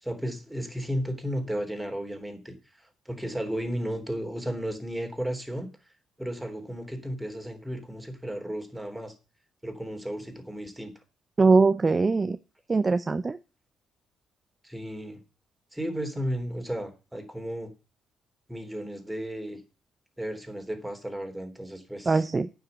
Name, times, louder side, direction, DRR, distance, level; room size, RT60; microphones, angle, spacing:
voice 1, 0.0-5.7 6.2-9.1 9.6-10.9 14.6-15.2 15.7-17.7 18.5-19.6 20.2-22.2, equal, 10° right, 5 dB, 3.3 m, -34 dB
voice 2, 11.4-12.4 12.7-13.4 22.1-22.5, right 4 dB, 30° right, 13 dB, 0.5 m, -22 dB
9.5 x 6.0 x 8.1 m, 0.32 s
supercardioid pair, 60°, 0 cm